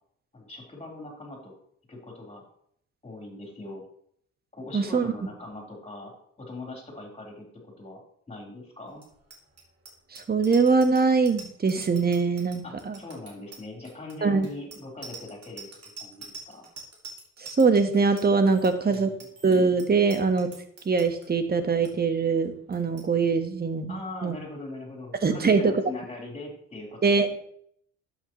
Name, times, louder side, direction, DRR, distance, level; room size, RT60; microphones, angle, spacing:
voice 1, 0.3-1.5 1.9-2.4 3.0-3.8 4.5-7.4 7.8-8.0 8.3-9.0 12.6-15.7 16.0-16.7 18.6-19.2 23.9-27.4, left 2 dB, 20° left, -1 dB, 4.2 m, -41 dB
voice 2, 4.7-5.1 10.1-13.0 14.2-14.5 17.4-19.1 19.4-20.5 20.8-24.3 25.2-25.7 27.0-27.3, right 4 dB, 30° right, 8 dB, 1.4 m, -23 dB
Bicycle bell, 8.9-21.3 21.6-21.9 22.2-22.5 22.7-23.1, right 4 dB, 55° right, 3.1 m, -45 dB
11.5 x 8.4 x 3.2 m, 0.66 s
cardioid pair, 90°, 30 cm